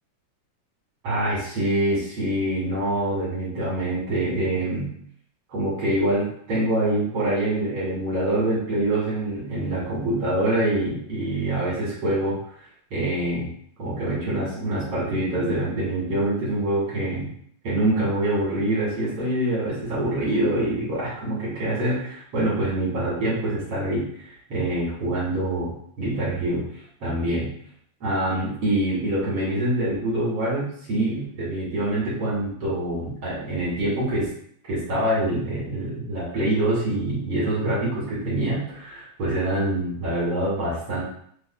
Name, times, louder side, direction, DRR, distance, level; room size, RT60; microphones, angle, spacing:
voice 1, 1.0-4.9 5.5-12.4 12.9-13.5 13.8-17.3 17.6-26.6 27.0-27.5 28.0-34.3 34.7-41.0, right 1 dB, 50° right, -9 dB, 1.8 m, -25 dB
6.3 x 2.7 x 2.2 m, 0.64 s
omnidirectional pair, 4.9 m